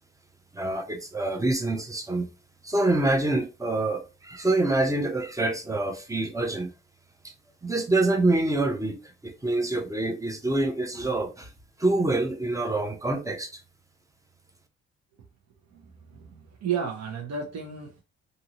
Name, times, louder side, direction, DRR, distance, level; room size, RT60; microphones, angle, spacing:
voice 1, 0.5-2.3 2.6-6.7 7.6-11.5 11.8-13.6, right 2 dB, 10° right, 0.6 m, -26 dB
voice 2, 15.7-18.0, right 7 dB, 60° right, 1.0 m, -33 dB
2.7 x 2.6 x 2.9 m
cardioid pair, 90°, 30 cm